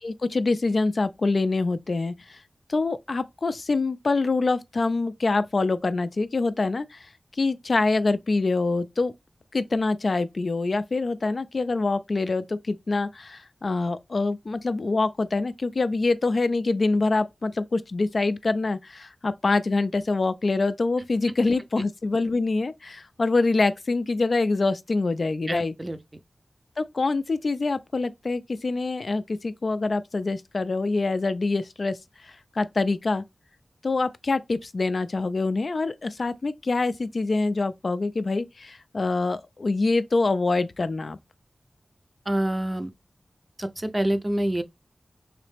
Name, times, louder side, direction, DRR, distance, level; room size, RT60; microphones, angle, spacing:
voice 1, 0.0-2.4 2.7-7.1 7.4-9.1 9.5-25.7 26.8-32.0 32.2-33.2 33.8-41.2, left 3 dB, 60° left, 0.3 m, -25 dB
voice 2, 25.5-26.0 42.3-42.9 43.6-44.6, right 1 dB, 25° right, 0.5 m, -26 dB
3.2 x 3.0 x 3.2 m
wide cardioid pair, 70°, 0 cm